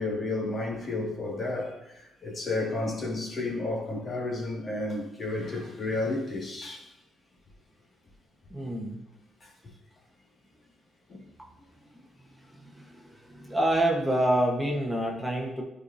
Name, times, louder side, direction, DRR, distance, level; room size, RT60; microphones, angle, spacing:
voice 1, 0.0-6.9 9.4-9.5 11.1-11.2, left 2 dB, 40° left, -2 dB, 2.1 m, -32 dB
voice 2, 8.5-9.0 12.4-15.6, right 1 dB, 5° right, -1 dB, 1.2 m, -28 dB
10.5 x 4.8 x 2.7 m, 0.86 s
cardioid pair, 90°, 0 cm